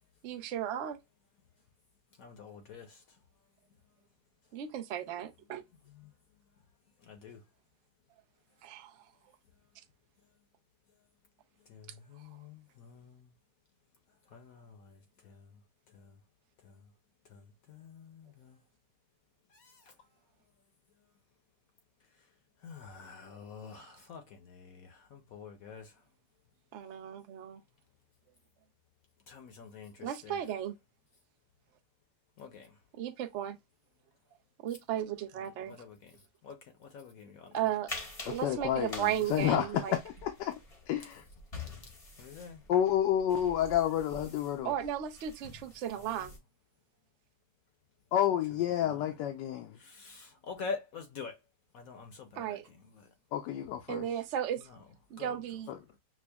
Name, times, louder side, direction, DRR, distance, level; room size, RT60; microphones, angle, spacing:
voice 1, 0.2-1.0 4.5-5.6 8.6-8.9 26.7-27.6 30.0-30.7 33.0-33.6 34.6-35.7 37.5-37.9 38.3-39.9 44.6-46.3 52.4-52.6 53.9-54.6 55.1-55.7, right 10 dB, 75° right, 0.6 m, -35 dB
voice 2, 2.2-3.0 5.9-6.1 7.0-7.4 11.7-13.2 14.3-14.9 15.2-15.4 15.9-16.0 17.3-17.4 17.7-18.5 19.5-19.7 22.6-25.9 29.3-30.4 32.4-32.7 35.4-36.1 36.4-36.6 36.8-37.7 42.2-42.6 46.0-46.4 48.7-49.0 49.8-51.3 51.7-53.0 54.6-54.8 55.2-55.4 55.7-55.8, left 5 dB, 65° left, 1.0 m, -46 dB
sound 1, 37.9-46.4, left 3 dB, 30° left, 0.7 m, -47 dB
voice 3, 38.2-40.5 40.9-41.2 42.7-44.7 48.1-49.8 53.3-54.1 55.7-55.8, left 10 dB, 80° left, 1.2 m, -30 dB
6.0 x 2.1 x 2.2 m
omnidirectional pair, 1.9 m